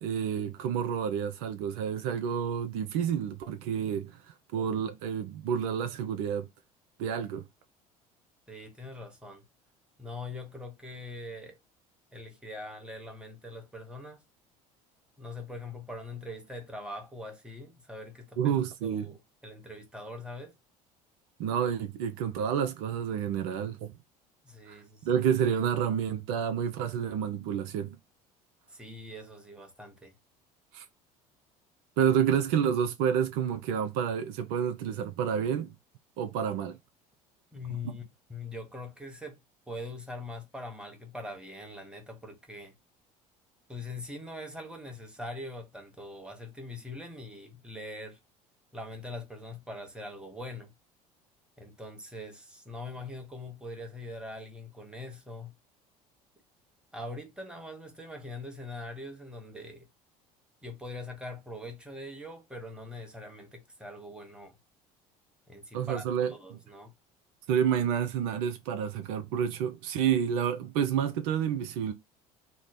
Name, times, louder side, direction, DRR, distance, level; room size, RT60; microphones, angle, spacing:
voice 1, 0.0-6.5 7.0-7.4 18.4-19.1 21.4-23.9 24.7-28.0 30.7-30.9 32.0-35.7 36.2-36.8 65.7-66.6 67.5-71.9, right 8 dB, 65° right, 0.5 m, -29 dB
voice 2, 8.5-9.5 10.0-11.6 12.1-14.2 15.2-20.6 24.4-25.3 28.7-30.1 37.5-38.0 38.3-42.8 43.7-48.2 48.7-50.7 51.6-55.5 56.9-59.9 60.6-64.6 65.5-66.9, left 2 dB, 5° right, 1.2 m, -42 dB
3.2 x 2.0 x 4.0 m
hypercardioid pair, 65°, 19 cm